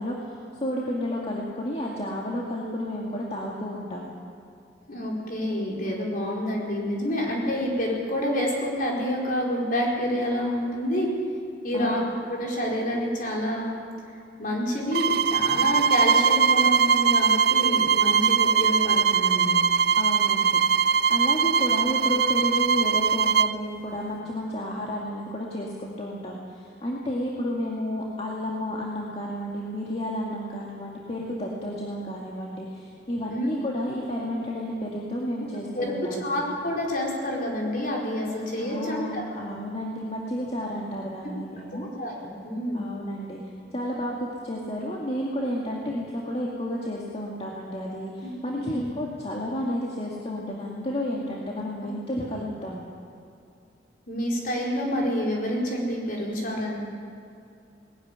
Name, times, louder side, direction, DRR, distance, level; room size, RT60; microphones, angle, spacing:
voice 1, 0.0-4.1 11.7-12.1 20.0-20.6 21.1-36.3 38.6-41.9 42.7-43.4 43.7-52.8, equal, 35° left, -3 dB, 2.1 m, -31 dB
voice 2, 4.9-11.1 11.6-13.7 14.4-19.6 33.3-33.5 35.7-39.2 42.0-42.9 48.6-48.8 52.3-52.5 54.1-56.8, equal, 50° left, -2 dB, 4.9 m, -28 dB
sound 1, 14.9-23.6, right 6 dB, 60° right, 0.5 m, -21 dB
19.5 x 14.0 x 10.0 m, 2.5 s
head